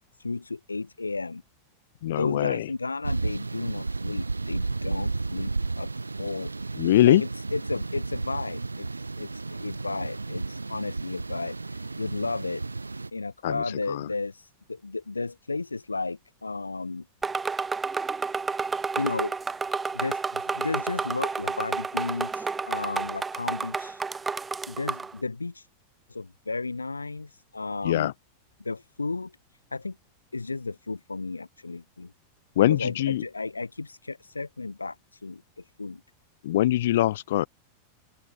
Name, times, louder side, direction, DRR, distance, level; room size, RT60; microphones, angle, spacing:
voice 1, 0.2-1.4 2.1-5.5 5.7-5.9 6.2-12.6 13.1-17.1 19.0-19.3 19.9-24.0 24.7-25.7 26.1-28.1 28.6-30.0 30.3-32.1 32.6-36.0, left 3 dB, 80° left, 5.0 m, -34 dB
voice 2, 2.0-2.7 6.8-7.2 13.4-14.1 27.8-28.1 32.6-33.2 36.4-37.5, left 14 dB, 55° left, 6.5 m, -23 dB
sound 1, 3.0-13.1, right 3 dB, 80° right, 2.9 m, -32 dB
sound 2, 17.2-25.1, right 4 dB, 15° right, 8.0 m, -30 dB
open air
figure-of-eight pair, 90°, 0 cm